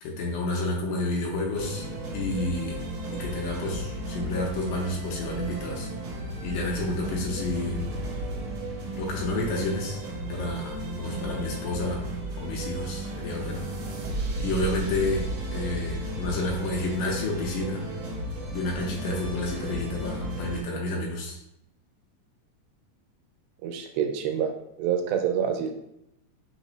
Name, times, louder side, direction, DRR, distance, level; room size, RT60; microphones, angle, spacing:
voice 1, 0.0-1.9 2.1-2.8 3.1-5.9 6.4-7.9 9.0-10.0 10.3-12.0 12.4-13.6 14.4-17.9 18.5-21.4, left 2 dB, 90° left, -2 dB, 2.5 m, -30 dB
sound 1, 1.5-20.6, right 1 dB, 70° right, 1.6 m, -34 dB
voice 2, 23.6-24.5 24.8-25.7, right 8 dB, 85° right, 5 dB, 2.4 m, -27 dB
5.8 x 2.1 x 3.9 m, 0.80 s
omnidirectional pair, 4.0 m